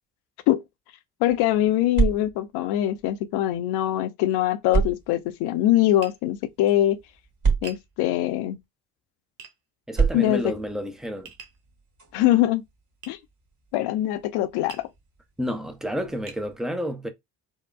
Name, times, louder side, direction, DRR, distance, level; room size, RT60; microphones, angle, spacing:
voice 1, 1.2-7.0 7.6-8.6 10.1-10.4 12.1-12.6 13.1-13.2 13.7-14.9, left 13 dB, 55° left, 0.7 m, -23 dB
sound 1, 1.3-3.6 4.7-8.7 9.9-16.6, right 5 dB, 40° right, 2.3 m, -31 dB
Tap, 6.0-6.2 7.6-7.9 9.4-9.6 11.2-11.6 13.0-13.2 14.7-14.9 15.6-15.7 16.3-16.5, right 6 dB, 85° right, 0.7 m, -43 dB
voice 2, 9.9-11.3 15.4-17.1, equal, ahead, 0.7 m, -30 dB
4.4 x 2.2 x 2.3 m
figure-of-eight pair, 50°, 48 cm